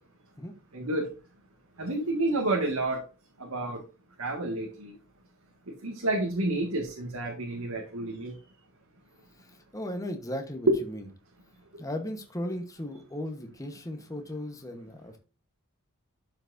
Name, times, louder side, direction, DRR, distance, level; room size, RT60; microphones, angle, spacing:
voice 1, 0.7-1.1 1.8-3.0 3.4-3.8 4.2-5.0 5.7-8.4 10.7-10.8 11.7-11.8, right 2 dB, 85° right, 1.9 m, -29 dB
voice 2, 9.4-11.0 11.8-15.2, left 1 dB, 15° left, 1.1 m, -36 dB
12.5 x 5.9 x 2.6 m
head